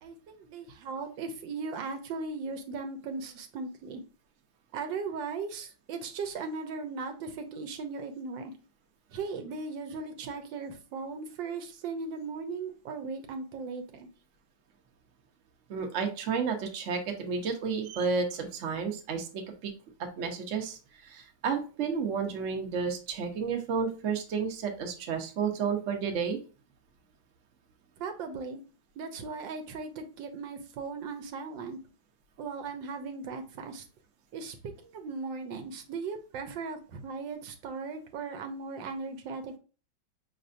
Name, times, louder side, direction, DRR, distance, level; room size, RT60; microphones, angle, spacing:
voice 1, 0.0-4.0 4.7-8.5 9.1-14.1 28.0-28.6 29.0-31.8 32.4-33.8 34.3-34.6 34.8-39.6, right 4 dB, 75° right, 6 dB, 1.3 m, -38 dB
voice 2, 15.7-19.7 20.2-26.4, right 5 dB, 55° right, 3 dB, 0.9 m, -31 dB
5.4 x 3.3 x 2.5 m, 0.35 s
omnidirectional pair, 2.1 m